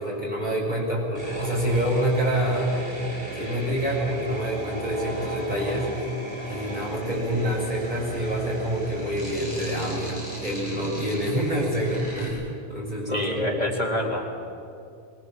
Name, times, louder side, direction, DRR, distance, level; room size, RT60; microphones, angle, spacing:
voice 1, 0.0-2.7 3.4-5.9 6.5-13.7, equal, 45° right, -4 dB, 6.2 m, -27 dB
sound 1, 1.2-12.3, right 1 dB, 60° right, 6.3 m, -34 dB
voice 2, 13.1-14.4, left 1 dB, 40° left, 1 dB, 2.0 m, -27 dB
22.5 x 20.5 x 7.3 m, 2.6 s
omnidirectional pair, 1.1 m